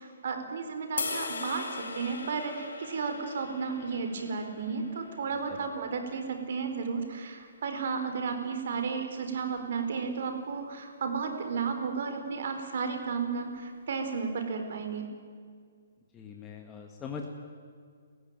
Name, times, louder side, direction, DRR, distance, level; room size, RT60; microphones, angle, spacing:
voice 1, 0.0-15.0, right 5 dB, 55° right, 7 dB, 4.4 m, -33 dB
sound 1, 1.0-7.2, left 4 dB, 80° left, 5.0 m, -40 dB
voice 2, 16.1-17.3, left 6 dB, 15° left, 2 dB, 1.7 m, -41 dB
29.5 x 15.5 x 9.1 m, 2.1 s
hypercardioid pair, 160°, 0 cm